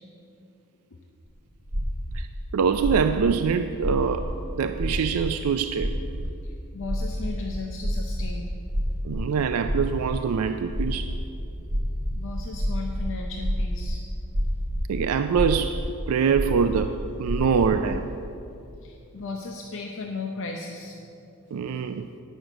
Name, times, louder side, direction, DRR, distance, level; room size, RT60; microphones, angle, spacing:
sound 1, 1.6-2.2 2.8-3.3 3.8-4.3 4.7-4.9 5.1-5.3 5.7-8.4 8.7-9.3 9.6-10.2 10.7-15.8 16.2-16.8 17.2-17.9, equal, 40° right, 1.6 m, -28 dB
voice 1, 2.5-5.9 9.0-11.1 14.9-18.1 21.5-22.1, right 6 dB, 80° right, 9 dB, 0.4 m, -24 dB
voice 2, 6.4-8.5 12.1-14.0 18.8-21.0, left 3 dB, 60° left, 2 dB, 0.7 m, -36 dB
9.0 x 6.3 x 7.9 m, 2.6 s
head